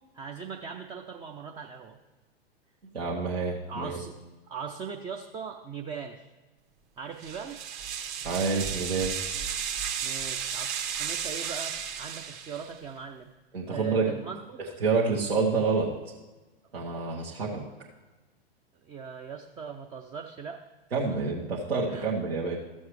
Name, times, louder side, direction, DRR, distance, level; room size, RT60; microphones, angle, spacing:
voice 1, 0.1-2.0 3.7-4.1 4.5-6.2 7.0-7.6 10.0-13.3 13.7-14.6 18.8-20.6 21.1-21.2 21.9-22.1, right 6 dB, 15° right, 3 dB, 0.4 m, -40 dB
voice 2, 2.9-4.0 8.2-9.3 13.5-14.1 14.8-15.9 16.7-17.6 20.9-22.6, right 4 dB, 80° right, -4 dB, 1.4 m, -28 dB
sound 1, 7.2-12.8, right 8 dB, 40° right, 1.1 m, -34 dB
13.5 x 7.1 x 3.2 m, 1.2 s
figure-of-eight pair, 105°, 31 cm